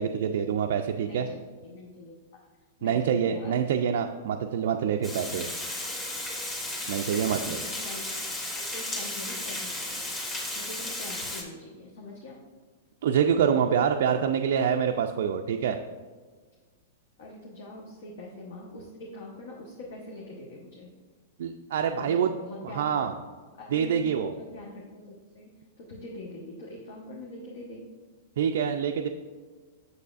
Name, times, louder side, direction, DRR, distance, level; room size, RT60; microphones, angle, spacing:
voice 1, 0.0-1.3 2.8-5.5 6.9-7.6 13.0-15.8 21.4-22.3 22.6-23.1 23.7-24.3 28.4-29.1, right 7 dB, 65° right, 4 dB, 0.3 m, -26 dB
voice 2, 1.0-2.4 2.8-3.6 5.2-5.7 7.4-8.0 8.6-10.0 10.3-12.4 17.2-20.9 21.9-22.8 23.6-25.5 25.8-27.8, left 1 dB, 65° left, -2 dB, 1.1 m, -43 dB
Water, 5.0-11.4, left 1 dB, 20° left, 1.5 m, -34 dB
6.8 x 6.6 x 2.4 m, 1.5 s
hypercardioid pair, 110°, 0 cm